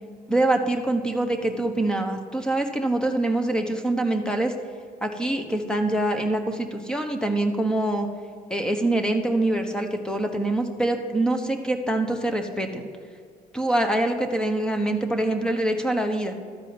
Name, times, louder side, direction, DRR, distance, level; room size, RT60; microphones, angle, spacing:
voice 1, 0.3-4.5 5.0-8.1 8.5-12.9 13.5-16.3, right 1 dB, 5° left, 5 dB, 1.2 m, -24 dB
13.0 x 4.9 x 6.9 m, 2.1 s
cardioid pair, 110°, 17 cm